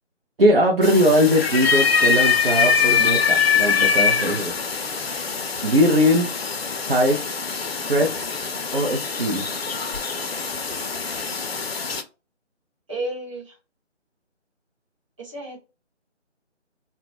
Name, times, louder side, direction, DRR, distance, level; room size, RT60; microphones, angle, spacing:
voice 1, 0.4-4.5 5.6-6.3 6.9-7.2 7.9-8.3 8.7-9.4, equal, 50° right, 0.5 m, -20 dB
sound 1, 0.8-12.0, left 5 dB, 55° left, 0.5 m, -23 dB
voice 2, 12.9-13.4 15.2-15.6, right 1 dB, 25° right, 1.0 m, -31 dB
2.3 x 2.1 x 2.9 m
figure-of-eight pair, 160°, 36 cm